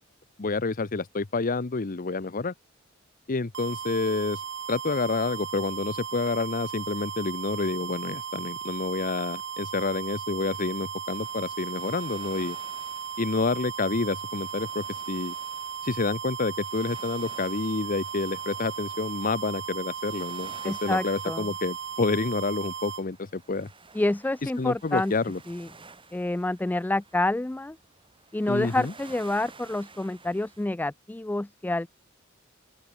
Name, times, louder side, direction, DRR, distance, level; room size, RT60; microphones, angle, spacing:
voice 1, 0.4-2.5 3.3-4.4 4.7-12.6 13.2-15.3 15.8-23.7 24.4-25.4 28.5-28.9, left 3 dB, 45° left, 0.8 m, -29 dB
sound 1, 3.5-23.0, right 7 dB, 60° right, 1.1 m, -36 dB
sound 2, 11.1-30.7, right 4 dB, 25° right, 4.6 m, -52 dB
voice 2, 20.6-21.5 23.9-25.1 25.5-25.7 26.1-27.8 28.3-31.9, left 2 dB, 10° left, 0.3 m, -28 dB
open air
head